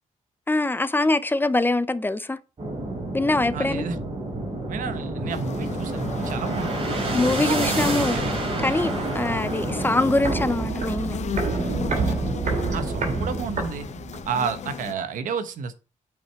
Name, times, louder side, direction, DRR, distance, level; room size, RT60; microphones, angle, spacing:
voice 1, 0.5-2.4 3.1-3.9 7.1-8.2 8.6-11.2, left 2 dB, 15° left, 0.6 m, -23 dB
sound 1, 2.6-10.4, right 2 dB, 45° right, 4.2 m, -28 dB
voice 2, 3.5-4.0 4.7-6.9 7.2-8.3 12.7-13.9 14.2-15.7, right 6 dB, 85° right, 1.2 m, -31 dB
sound 2, 5.3-14.9, left 8 dB, 60° left, 0.7 m, -37 dB
Walk footsteps, 9.7-14.4 14.6-14.7, right 3 dB, 70° right, 3.4 m, -27 dB
8.9 x 4.9 x 4.6 m
cardioid pair, 90°, 13 cm